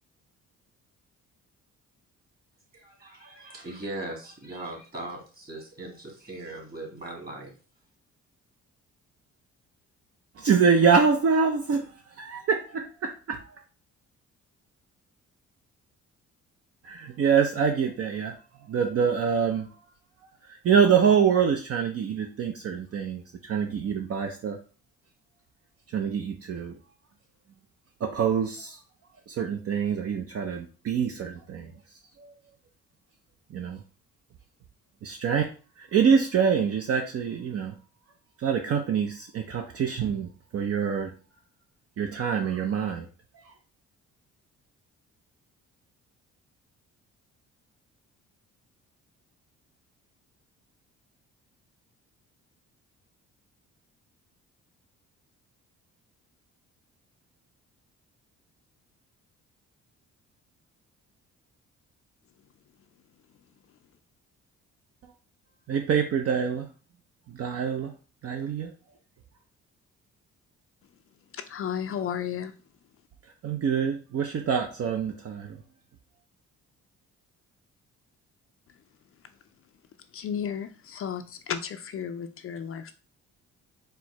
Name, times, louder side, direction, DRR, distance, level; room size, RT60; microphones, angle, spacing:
voice 1, 2.7-7.5, right 2 dB, 30° right, 0 dB, 1.9 m, -39 dB
voice 2, 10.4-13.4 16.8-18.4 18.7-19.7 20.4-24.6 25.9-26.7 28.0-28.8 29.3-31.7 32.2-32.3 33.5-33.8 35.0-35.5 35.8-37.8 38.4-41.1 42.0-43.1 43.4-43.5 65.7-66.7 67.3-67.9 68.2-68.7 73.4-75.6, right 6 dB, 50° right, 4 dB, 0.6 m, -25 dB
voice 3, 71.3-72.5 80.1-82.9, left 8 dB, 50° left, 8 dB, 0.4 m, -33 dB
4.4 x 2.1 x 4.4 m, 0.38 s
cardioid pair, 90°, 30 cm